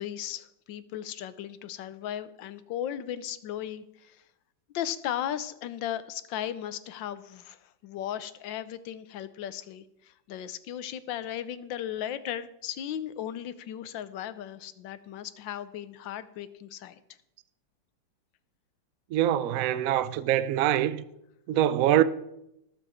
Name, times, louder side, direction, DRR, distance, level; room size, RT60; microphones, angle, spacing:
voice 1, 0.0-4.2 4.7-17.0, left 10 dB, 75° left, 1.4 m, -36 dB
voice 2, 19.1-21.0 21.5-22.0, right 12 dB, 75° right, 0.8 m, -24 dB
19.0 x 7.2 x 4.3 m
omnidirectional pair, 2.1 m